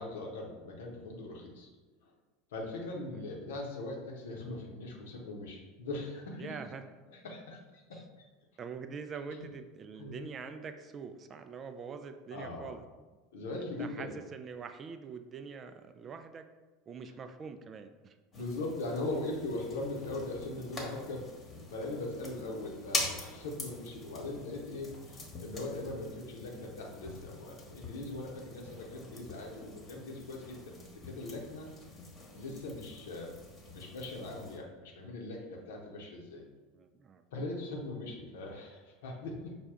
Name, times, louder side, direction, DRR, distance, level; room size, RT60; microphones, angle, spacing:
voice 1, 0.0-1.7 2.0-2.1 2.5-6.6 7.1-8.2 10.0-10.1 12.3-12.8 13.3-14.1 18.3-21.3 21.7-31.7 32.3-33.4 33.7-36.4 37.3-39.6, left 2 dB, 70° left, 0 dB, 0.8 m, -40 dB
voice 2, 6.4-6.8 7.9-8.0 8.6-13.2 13.6-16.5 16.9-18.2 28.9-29.2 36.7-37.4, right 5 dB, 35° right, 8 dB, 0.3 m, -45 dB
sound 1, 18.3-34.6, left 2 dB, 25° left, 1.0 m, -44 dB
5.0 x 2.2 x 3.6 m, 1.3 s
hypercardioid pair, 80°, 0 cm